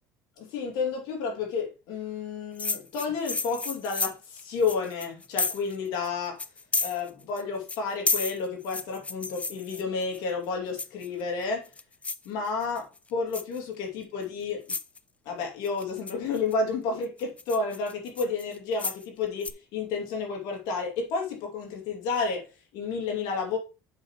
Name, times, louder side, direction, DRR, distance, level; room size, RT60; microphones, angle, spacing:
voice 1, 0.4-6.4 6.8-11.7 12.2-14.6 15.2-23.6, left 4 dB, 75° left, 2.8 m, -31 dB
sound 1, 2.6-5.8 6.0-6.1 6.4-7.4 7.7-10.2 10.8-11.2 11.6-12.3 12.6-13.0 13.3-13.6 14.2-14.3 14.7-15.0 15.6-16.5 17.0-19.1 19.4-19.5, left 4 dB, 15° left, 0.5 m, -31 dB
7.5 x 6.1 x 3.2 m
supercardioid pair, 105°, 7 cm